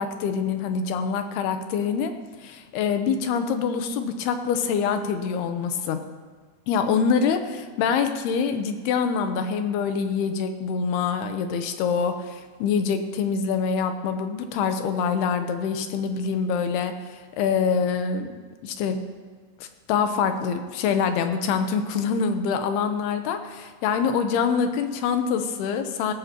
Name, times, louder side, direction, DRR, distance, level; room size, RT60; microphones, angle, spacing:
voice 1, 0.0-2.1 2.4-6.0 6.7-18.3 18.6-19.0 19.6-26.1, left 6 dB, 85° left, 7 dB, 2.9 m, -25 dB
17.0 x 16.5 x 3.0 m, 1.5 s
omnidirectional pair, 4.5 m